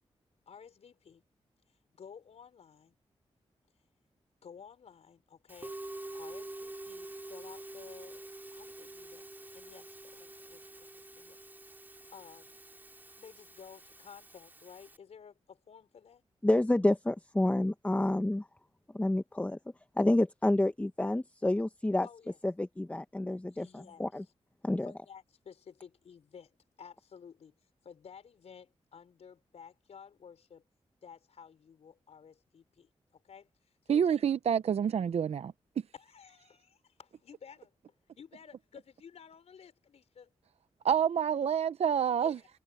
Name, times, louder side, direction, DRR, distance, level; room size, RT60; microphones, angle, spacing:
voice 1, 0.5-1.2 1.7-2.9 4.4-5.8 6.1-11.4 12.1-12.6 13.2-16.2 22.0-22.4 23.5-24.0 24.8-27.5 27.8-30.6 31.0-34.1 35.9-37.7 38.2-40.3 42.1-42.5, left 7 dB, 75° left, 5.1 m, -53 dB
Musical instrument, 5.5-15.0, right 1 dB, 15° right, 3.1 m, -47 dB
voice 2, 16.4-18.5 18.9-19.6 20.0-22.1 22.4-24.2 24.6-24.9, left 1 dB, 15° left, 1.1 m, -29 dB
voice 3, 33.9-35.5 40.8-42.4, right 8 dB, 70° right, 0.6 m, -27 dB
cardioid pair, 85°, 11 cm